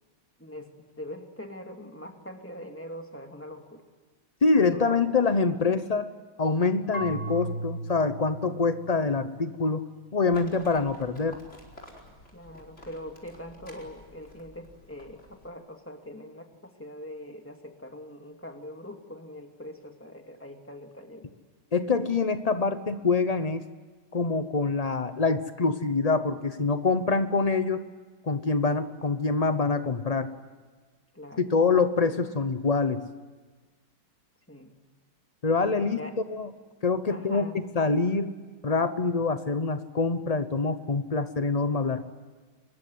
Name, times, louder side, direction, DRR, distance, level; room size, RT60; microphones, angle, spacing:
voice 1, 0.4-3.8 4.7-5.1 12.3-21.3 31.1-31.5 34.5-34.7 35.8-36.2 37.1-37.6, left 1 dB, 5° left, 4 dB, 2.2 m, -42 dB
voice 2, 4.4-6.1 6.4-9.9 10.1-11.4 21.7-23.6 24.1-27.9 28.2-30.3 31.4-33.0 35.4-36.0 36.3-36.5 36.8-37.5 37.7-38.4 38.6-42.0, left 4 dB, 90° left, 10 dB, 0.3 m, -25 dB
Marimba xylophone / Wood, 6.9-9.8, right 2 dB, 50° left, 3.4 m, -37 dB
Livestock farm animals working animals, 10.3-15.5, left 1 dB, 35° left, 4.8 m, -51 dB
25.0 x 21.0 x 9.4 m, 1.4 s
omnidirectional pair, 2.2 m